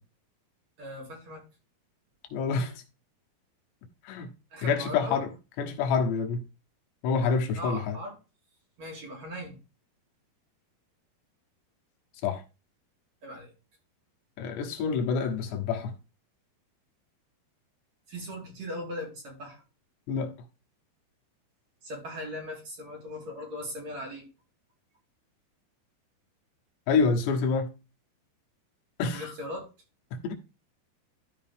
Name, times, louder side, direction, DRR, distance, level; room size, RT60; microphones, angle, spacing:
voice 1, 0.8-1.4 4.5-5.2 7.2-8.2 8.8-9.6 13.2-13.5 18.1-19.6 21.8-24.3 29.1-29.7, left 1 dB, 45° right, 4.1 m, -39 dB
voice 2, 2.3-2.8 4.0-4.3 4.6-5.3 5.6-6.5 7.0-8.0 12.2-12.4 14.4-15.9 20.1-20.3 26.9-27.7 29.0-29.3 30.1-30.3, left 5 dB, 80° left, 3.2 m, -27 dB
13.5 x 4.7 x 3.5 m
omnidirectional pair, 4.8 m